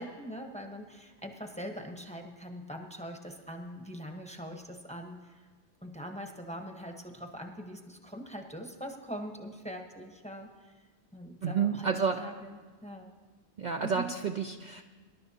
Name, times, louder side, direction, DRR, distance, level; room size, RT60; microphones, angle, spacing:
voice 1, 0.0-5.4 5.8-10.7 11.1-11.9 12.2-13.1 13.8-14.1, equal, 5° left, 3 dB, 0.9 m, -42 dB
voice 2, 11.4-12.2 13.6-14.8, right 6 dB, 50° right, 3 dB, 0.6 m, -30 dB
24.5 x 11.5 x 2.8 m, 1.4 s
omnidirectional pair, 1.1 m